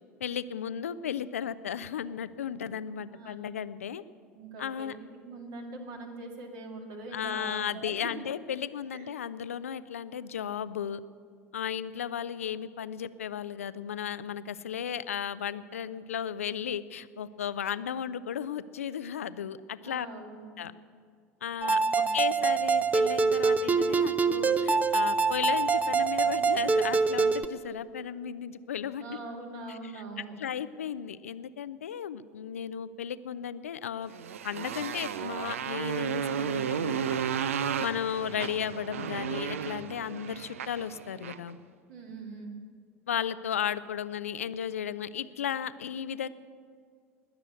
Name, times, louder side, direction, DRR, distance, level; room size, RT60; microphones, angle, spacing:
voice 1, 0.2-4.0 4.6-5.0 7.1-11.0 11.5-20.1 20.6-20.7 21.4-21.8 22.1-29.2 29.7-30.0 30.4-34.1 34.4-37.2 37.8-41.6 43.1-46.3, left 8 dB, 75° left, 15 dB, 0.5 m, -35 dB
voice 2, 4.3-7.9 8.9-9.0 19.8-20.5 21.8-22.1 29.0-30.3 41.9-42.6, right 3 dB, 55° right, 2 dB, 2.2 m, -42 dB
sound 1, 21.6-27.4, right 4 dB, 20° right, 0.7 m, -25 dB
Motorcycle, 34.1-41.5, right 8 dB, 70° right, 0.5 m, -33 dB
20.0 x 6.8 x 8.0 m, 2.1 s
figure-of-eight pair, 75°, 8 cm